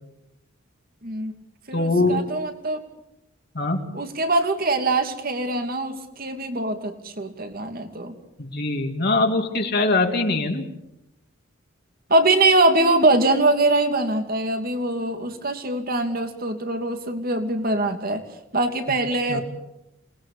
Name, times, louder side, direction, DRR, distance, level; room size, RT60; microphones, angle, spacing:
voice 1, 1.0-1.3 1.7-2.8 3.9-8.1 12.1-18.2 18.5-19.4, right 2 dB, 45° right, 6 dB, 2.9 m, -23 dB
voice 2, 1.7-2.3 3.5-3.8 8.4-10.7 19.3-19.4, left 2 dB, 50° left, 2 dB, 2.7 m, -22 dB
27.5 x 20.5 x 8.5 m, 0.88 s
head